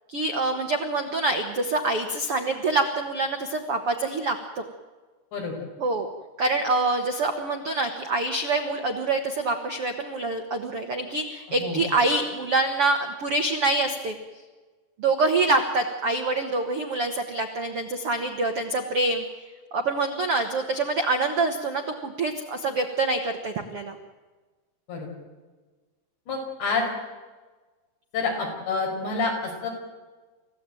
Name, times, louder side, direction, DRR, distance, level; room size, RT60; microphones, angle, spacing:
voice 1, 0.1-4.7 5.8-6.1 6.4-14.2 15.0-19.2 19.7-24.0, right 2 dB, 75° right, 5 dB, 1.3 m, -26 dB
voice 2, 11.5-11.8 24.9-25.1 26.3-26.8 28.1-29.7, left 4 dB, 75° left, 1 dB, 7.7 m, -28 dB
28.5 x 15.5 x 9.2 m, 1.3 s
omnidirectional pair, 5.0 m